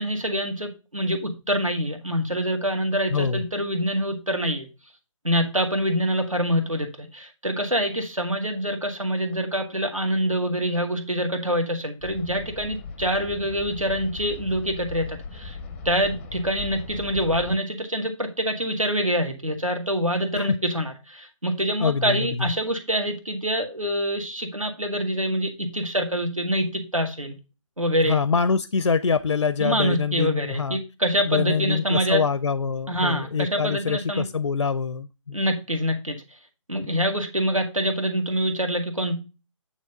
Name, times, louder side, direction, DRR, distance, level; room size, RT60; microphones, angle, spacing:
voice 1, 0.0-4.7 5.2-15.6 15.8-27.4 27.8-28.2 29.6-32.2 32.9-34.2 35.3-36.2 36.7-39.1, equal, 90° right, 5 dB, 2.1 m, -25 dB
voice 2, 3.1-3.4 20.4-20.6 21.8-22.5 28.0-30.8 31.2-35.4 36.8-36.9, left 5 dB, 70° left, 15 dB, 0.5 m, -25 dB
sound 1, 12.0-17.6, left 4 dB, 5° left, 0.5 m, -38 dB
9.2 x 3.2 x 5.2 m, 0.29 s
figure-of-eight pair, 150°, 17 cm